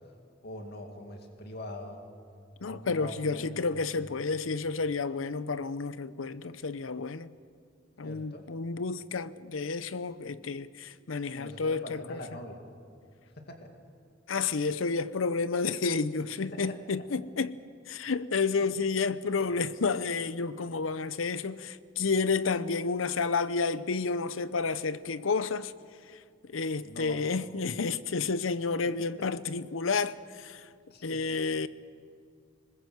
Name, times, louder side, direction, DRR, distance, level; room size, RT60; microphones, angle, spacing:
voice 1, 0.4-2.0 2.7-3.5 4.0-4.1 8.0-8.5 11.3-12.6 13.4-13.7 16.5-16.8 18.6-18.7 19.5-19.6 26.8-27.2 29.3-29.4 30.9-31.2, left 1 dB, 55° left, 2.4 m, -43 dB
voice 2, 2.6-7.3 8.0-12.2 14.3-17.6 17.9-25.7 26.1-26.2 26.5-30.7 31.0-31.7, left 4 dB, 90° left, 0.7 m, -30 dB
21.0 x 20.5 x 7.9 m
head